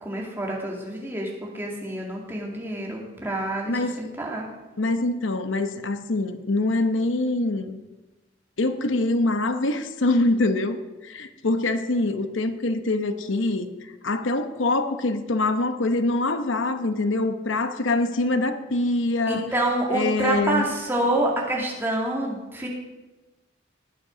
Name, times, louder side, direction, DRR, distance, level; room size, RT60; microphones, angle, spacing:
voice 1, 0.0-4.6 19.3-22.7, right 1 dB, 10° right, -2 dB, 2.1 m, -27 dB
voice 2, 3.7-4.0 4.8-7.8 8.6-19.5 19.9-20.6, left 2 dB, 85° left, 9 dB, 0.9 m, -24 dB
19.0 x 6.5 x 5.1 m, 1.1 s
head